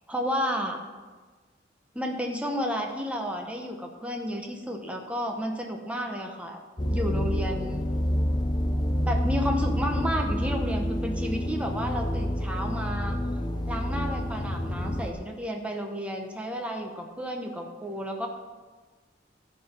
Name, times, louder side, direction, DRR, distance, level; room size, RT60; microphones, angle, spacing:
voice 1, 0.1-0.8 1.9-6.6 6.9-7.8 9.0-13.2 13.7-18.3, equal, 5° right, 2 dB, 1.0 m, -32 dB
sound 1, 6.8-15.1, equal, 25° left, 0.8 m, -28 dB
13.5 x 4.6 x 5.6 m, 1.4 s
head